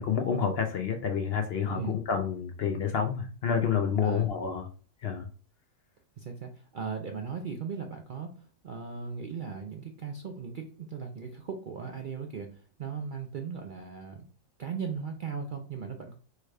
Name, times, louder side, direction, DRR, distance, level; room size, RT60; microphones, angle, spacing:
voice 1, 0.0-4.7 5.0-5.3, left 7 dB, 60° left, 5 dB, 0.7 m, -29 dB
voice 2, 1.7-2.0 4.0-4.3 6.2-14.3 14.6-16.2, right 6 dB, 60° right, 3 dB, 0.5 m, -38 dB
4.6 x 2.2 x 4.7 m, 0.40 s
omnidirectional pair, 1.4 m